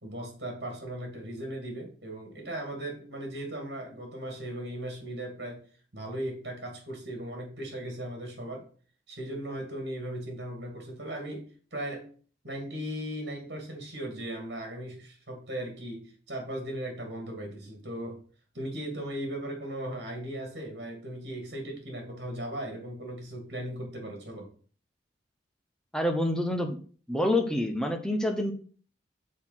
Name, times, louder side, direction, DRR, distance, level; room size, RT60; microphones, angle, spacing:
voice 1, 0.0-5.6 5.9-8.7 9.1-11.4 11.7-12.1 12.4-18.2 18.5-24.5, right 1 dB, 60° right, 1 dB, 2.4 m, -37 dB
voice 2, 25.9-26.8 27.1-28.5, left 1 dB, 5° left, 5 dB, 0.9 m, -27 dB
6.8 x 4.2 x 5.7 m, 0.42 s
head